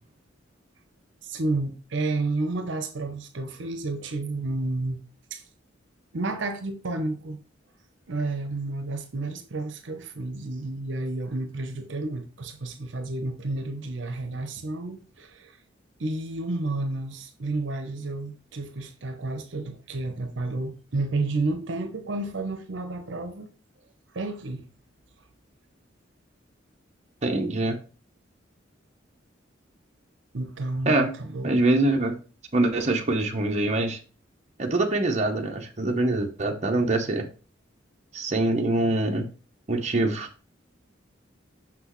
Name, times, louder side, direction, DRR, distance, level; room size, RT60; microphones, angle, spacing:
voice 1, 1.2-5.0 5.3-5.4 6.1-7.4 8.1-15.6 16.0-23.5 24.1-24.7 30.3-31.5, right 2 dB, 65° right, 0.8 m, -31 dB
voice 2, 27.2-27.8 30.9-31.1 31.4-32.2 32.5-34.0 34.6-37.2 38.1-39.3 39.7-40.3, right 2 dB, 35° right, 0.8 m, -24 dB
6.1 x 6.0 x 3.1 m
head